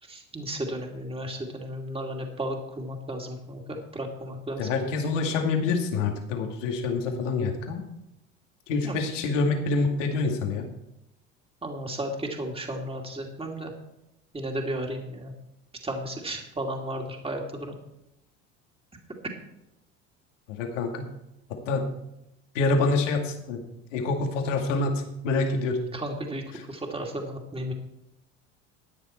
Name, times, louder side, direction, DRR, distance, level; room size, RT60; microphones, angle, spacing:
voice 1, 0.0-4.7 8.8-9.1 11.6-13.7 14.3-15.3 15.8-17.7 25.9-27.7, right 1 dB, 15° right, 2 dB, 2.6 m, -34 dB
voice 2, 4.6-7.8 8.7-10.7 20.6-21.1 21.7-21.8 22.5-23.6 23.9-25.8, left 3 dB, 80° left, 3 dB, 2.2 m, -26 dB
14.5 x 9.5 x 4.4 m, 0.84 s
hypercardioid pair, 75°, 37 cm